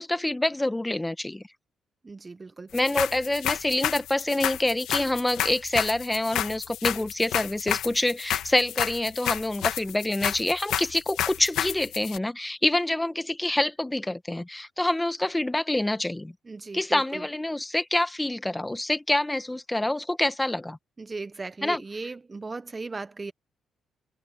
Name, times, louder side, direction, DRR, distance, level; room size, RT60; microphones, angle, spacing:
voice 1, 0.0-1.4 2.7-16.3 16.7-20.8 21.6-21.8, left 1 dB, 10° left, 1.2 m, -26 dB
voice 2, 2.0-2.7 16.5-17.2 21.0-23.3, right 3 dB, 25° right, 0.5 m, -37 dB
sound 1, 2.7-12.2, left 11 dB, 80° left, 1.4 m, -30 dB
cardioid pair, 90°, 0 cm